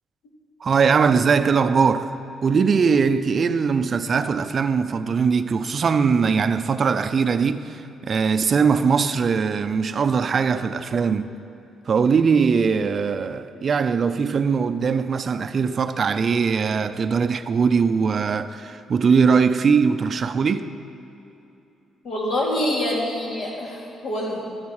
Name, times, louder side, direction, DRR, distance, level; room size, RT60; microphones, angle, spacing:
voice 1, 0.6-2.1 2.4-11.3 11.9-20.7, right 5 dB, 45° right, 0.5 m, -21 dB
voice 2, 22.0-24.5, left 1 dB, 65° left, 3.0 m, -26 dB
12.5 x 11.5 x 4.8 m
cardioid pair, 90°, 0 cm